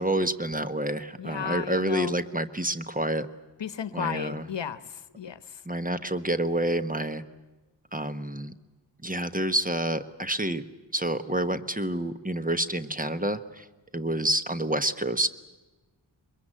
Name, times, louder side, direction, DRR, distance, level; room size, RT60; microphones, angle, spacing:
voice 1, 0.0-3.3 3.9-4.4 5.6-7.2 7.9-8.5 9.0-10.6 10.9-13.6 13.9-15.3, right 1 dB, 20° right, 11 dB, 1.2 m, -28 dB
voice 2, 1.2-2.2 3.6-5.4, left 8 dB, 65° left, 13 dB, 1.1 m, -34 dB
23.0 x 22.0 x 9.0 m, 1.1 s
cardioid pair, 55°, 46 cm